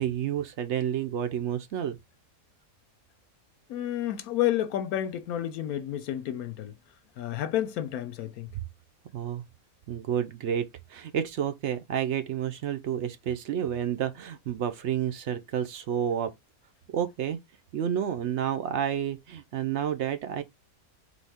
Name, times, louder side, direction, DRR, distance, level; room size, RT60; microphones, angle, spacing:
voice 1, 0.0-2.0 8.5-8.6 9.1-9.4 9.9-16.3 16.9-17.4 17.7-20.4, right 9 dB, 65° right, 0.7 m, -30 dB
voice 2, 3.7-6.7 7.2-8.5, left 12 dB, 90° left, 1.1 m, -30 dB
4.1 x 3.4 x 3.4 m
omnidirectional pair, 1.5 m